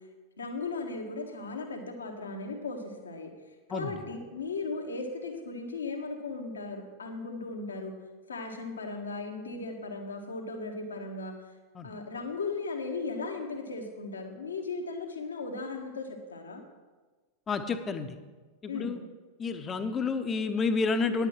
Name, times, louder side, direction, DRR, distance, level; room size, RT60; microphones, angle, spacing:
voice 1, 0.4-3.3 3.7-7.9 8.3-11.3 11.8-16.6 18.7-18.9, left 3 dB, 70° left, 3 dB, 1.5 m, -37 dB
voice 2, 17.5-18.2 18.6-19.0 19.4-21.3, left 4 dB, 20° left, 9 dB, 0.9 m, -30 dB
10.0 x 8.1 x 7.5 m, 1.3 s
figure-of-eight pair, 90°, 0 cm